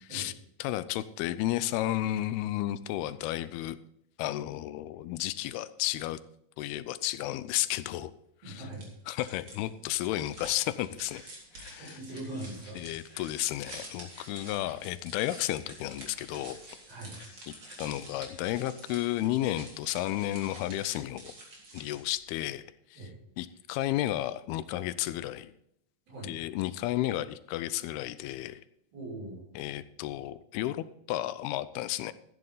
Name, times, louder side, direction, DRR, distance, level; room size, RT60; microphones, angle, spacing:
voice 1, 0.6-3.8 4.2-6.2 6.6-8.1 8.5-8.7 9.1-11.2 11.5-12.0 12.8-16.6 17.8-21.3 21.7-22.7 22.9-23.0 23.4-25.5 26.3-28.6 29.6-32.1, left 14 dB, 85° left, 15 dB, 2.6 m, -32 dB
voice 2, 8.4-8.9 11.8-12.8 16.9-17.2 23.0-23.1 26.1-26.3 28.9-29.4, right 2 dB, 70° right, -4 dB, 7.7 m, -41 dB
sound 1, 8.7-22.2, right 2 dB, 35° right, 3.1 m, -49 dB
sound 2, 10.4-18.5, left 2 dB, 25° left, 2.1 m, -55 dB
13.0 x 10.5 x 3.9 m, 0.74 s
omnidirectional pair, 4.4 m